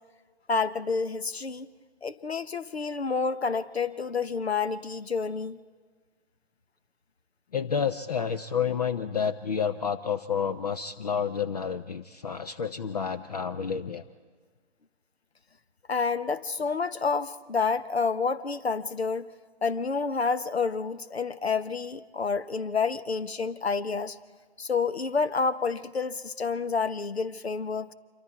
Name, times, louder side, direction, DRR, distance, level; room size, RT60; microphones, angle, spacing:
voice 1, 0.5-1.7 2.0-5.6 15.9-19.2 19.6-24.2 24.6-27.9, left 4 dB, 75° left, 14 dB, 1.0 m, -29 dB
voice 2, 7.5-14.0, left 7 dB, 40° left, 10 dB, 0.6 m, -30 dB
26.0 x 24.0 x 4.7 m, 1.5 s
figure-of-eight pair, 140°, 32 cm